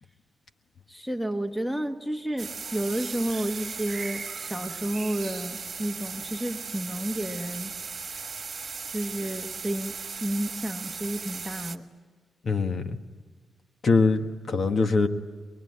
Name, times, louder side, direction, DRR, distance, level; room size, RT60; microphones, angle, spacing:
voice 1, 0.9-7.7 8.9-9.9 10.2-11.9, right 1 dB, ahead, 6 dB, 1.3 m, -31 dB
sound 1, 2.4-11.8, right 5 dB, 40° right, 1.5 m, -37 dB
voice 2, 12.4-13.0 13.8-15.1, left 4 dB, 50° left, 6 dB, 1.5 m, -23 dB
23.0 x 23.0 x 9.6 m, 1.5 s
cardioid pair, 120°, 0 cm